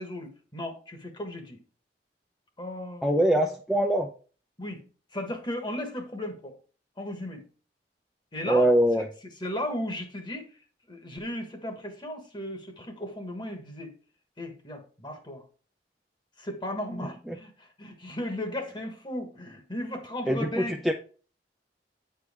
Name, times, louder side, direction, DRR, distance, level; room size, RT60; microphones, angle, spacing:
voice 1, 0.0-1.6 2.6-3.1 4.6-4.8 5.1-6.5 7.0-7.4 8.3-8.7 9.4-13.9 14.4-15.4 16.4-20.8, left 1 dB, 25° left, 5 dB, 1.3 m, -36 dB
voice 2, 3.0-4.1 8.5-9.1 17.3-17.4 20.3-20.9, right 1 dB, ahead, 1 dB, 0.5 m, -23 dB
8.9 x 4.7 x 3.5 m, 0.39 s
head